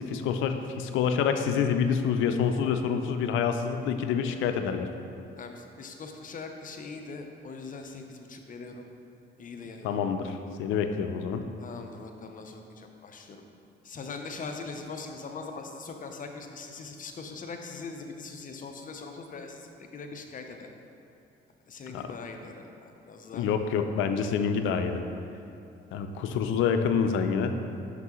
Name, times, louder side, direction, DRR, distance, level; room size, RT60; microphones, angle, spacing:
voice 1, 0.0-4.9 9.8-11.4 21.9-22.1 23.3-25.0 25.9-27.6, left 6 dB, 90° left, 7 dB, 0.4 m, -27 dB
voice 2, 5.4-8.8 9.4-10.0 11.6-13.4 13.8-20.7 21.7-23.5, left 4 dB, 40° left, 4 dB, 0.6 m, -41 dB
5.9 x 5.5 x 3.0 m, 2.7 s
cardioid pair, 90°, 20 cm